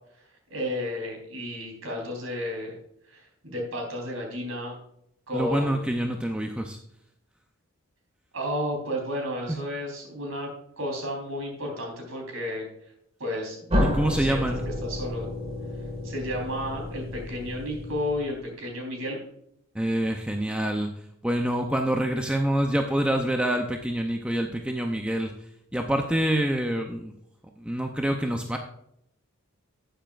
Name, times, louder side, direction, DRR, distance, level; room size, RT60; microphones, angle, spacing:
voice 1, 0.5-2.8 3.1-4.8 5.3-5.9 8.3-10.5 10.8-12.7 13.2-13.8 14.1-14.4 14.8-15.3 16.0-19.2, left 1 dB, 80° right, 1 dB, 3.7 m, -32 dB
voice 2, 5.3-6.8 9.5-9.6 13.8-14.6 19.7-20.9 21.2-25.3 25.7-27.1 27.6-28.6, right 1 dB, 5° right, 3 dB, 0.6 m, -26 dB
sound 1, 13.7-18.5, left 1 dB, 30° right, 1.8 m, -30 dB
12.0 x 9.1 x 2.5 m, 0.74 s
head